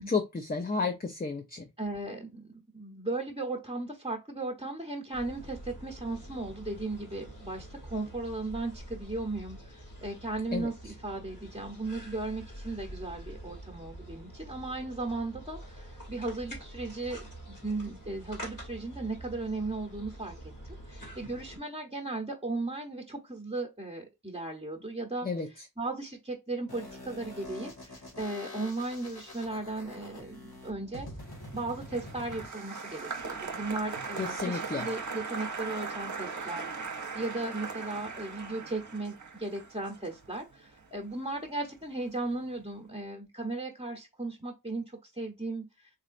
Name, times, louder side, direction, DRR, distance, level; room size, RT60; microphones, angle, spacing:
voice 1, 0.0-1.7 10.5-10.7 25.2-25.5 34.2-34.9, left 4 dB, 25° left, 0.6 m, -31 dB
voice 2, 1.8-17.2 17.5-20.3 20.6-31.1 31.5-45.9, right 2 dB, 15° right, 0.9 m, -36 dB
sound 1, 5.1-21.6, right 1 dB, 60° left, 2.6 m, -46 dB
sound 2, 26.7-34.7, left 1 dB, 80° left, 1.6 m, -46 dB
Applause, 31.3-41.7 42.0-42.6, right 4 dB, 50° right, 0.8 m, -39 dB
3.8 x 3.1 x 2.5 m
wide cardioid pair, 45°, 37 cm